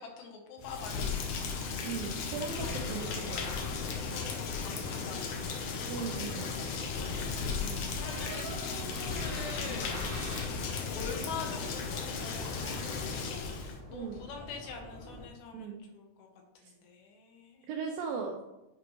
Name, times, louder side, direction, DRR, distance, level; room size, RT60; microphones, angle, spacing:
voice 1, 0.0-1.7 2.6-3.3 4.1-5.7 5.9-7.1 7.7-10.4 10.9-13.5 13.9-16.3 16.6-17.7, left 5 dB, 75° left, 2 dB, 2.7 m, -45 dB
Rain, 0.6-13.8, left 5 dB, 90° left, 1.7 m, -35 dB
voice 2, 1.8-3.7 5.9-6.5 7.6-7.9 13.9-14.2 15.5-15.9 16.6-16.7 17.7-18.4, right 5 dB, 80° right, 1 dB, 2.1 m, -38 dB
sound 1, 6.8-15.3, equal, 30° left, 0.4 m, -48 dB
Door, 8.0-10.6 12.3-12.4 12.6-13.0, right 2 dB, 60° right, 1.0 m, -44 dB
9.8 x 5.1 x 3.1 m, 0.96 s
omnidirectional pair, 4.7 m